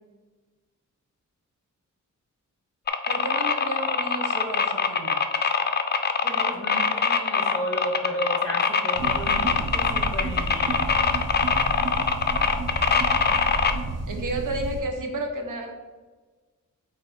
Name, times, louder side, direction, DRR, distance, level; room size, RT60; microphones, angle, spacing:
sound 1, 2.9-13.7, left 5 dB, 35° left, 0.4 m, -23 dB
voice 1, 3.1-5.2 14.1-15.7, right 1 dB, 80° right, 4 dB, 1.0 m, -31 dB
voice 2, 6.2-10.9, equal, 10° left, 2 dB, 0.8 m, -33 dB
sound 2, 8.9-14.8, right 2 dB, 55° right, 0.7 m, -31 dB
8.3 x 2.8 x 4.2 m, 1.3 s
wide cardioid pair, 150°, 31 cm